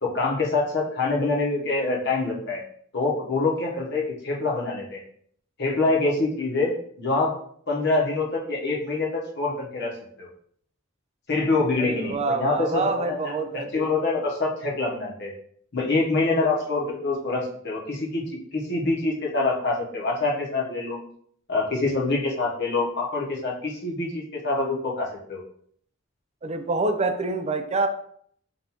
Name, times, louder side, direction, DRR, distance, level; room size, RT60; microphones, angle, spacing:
voice 1, 0.0-2.6 2.9-5.0 5.6-6.7 7.0-7.4 7.7-9.9 10.2-10.3 11.3-15.3 15.7-18.2 18.5-21.0 21.5-25.4, left 3 dB, 55° left, -2 dB, 1.0 m, -25 dB
voice 2, 11.8-13.9 26.4-27.9, right 3 dB, 30° right, 8 dB, 0.4 m, -26 dB
5.3 x 2.6 x 2.9 m, 0.62 s
head